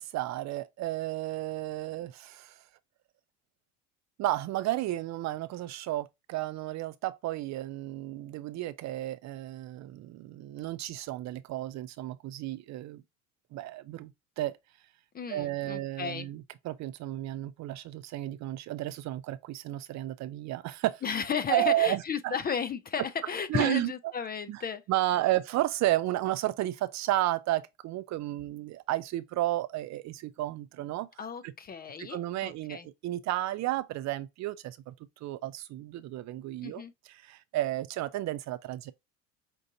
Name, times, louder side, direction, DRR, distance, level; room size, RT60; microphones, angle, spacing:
voice 1, 0.0-2.5 4.2-13.0 13.5-14.5 15.3-21.0 21.5-22.3 23.5-23.9 24.5-24.6 24.9-31.1 31.4-31.5 32.0-34.9 35.2-38.9, right 15 dB, 45° right, 0.5 m, -32 dB
voice 2, 15.1-16.3 21.0-24.8 31.2-32.9 36.6-36.9, left 6 dB, 25° left, 0.4 m, -34 dB
5.4 x 2.6 x 2.6 m
hypercardioid pair, 75°, 39 cm